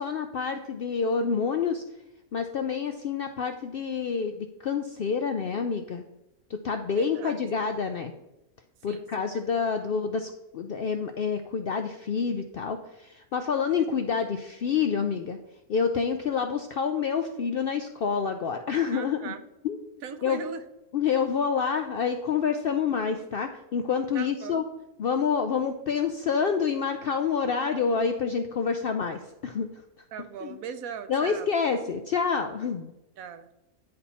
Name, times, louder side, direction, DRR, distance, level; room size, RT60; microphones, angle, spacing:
voice 1, 0.0-1.8 2.3-6.0 6.5-8.1 8.8-15.4 15.7-19.3 19.6-19.8 20.2-20.4 20.9-24.6 25.0-29.7 30.4-30.6 31.1-32.9, left 6 dB, 70° left, 7 dB, 0.5 m, -28 dB
voice 2, 6.9-7.4 8.9-9.7 13.7-13.8 18.9-19.4 20.0-20.6 24.1-24.6 30.1-31.5 33.2-33.5, right 7 dB, 80° right, 10 dB, 1.1 m, -39 dB
9.9 x 4.3 x 4.2 m, 0.89 s
omnidirectional pair, 1.5 m